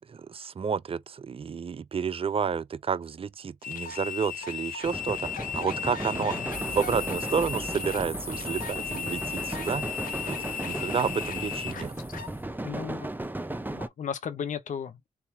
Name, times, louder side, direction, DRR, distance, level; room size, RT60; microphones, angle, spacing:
voice 1, 0.1-6.3 6.7-9.9 10.3-10.4 10.6-12.0, right 6 dB, 40° right, 0.5 m, -30 dB
sound 1, 3.6-12.3, left 9 dB, 75° left, 1.1 m, -36 dB
sound 2, 4.8-13.9, right 1 dB, 15° right, 0.8 m, -36 dB
voice 2, 6.2-6.5 12.6-13.1 13.7-15.1, left 7 dB, 60° left, 0.8 m, -35 dB
sound 3, 6.5-12.4, left 1 dB, 20° left, 1.6 m, -41 dB
3.6 x 2.7 x 4.4 m
supercardioid pair, 45°, 15 cm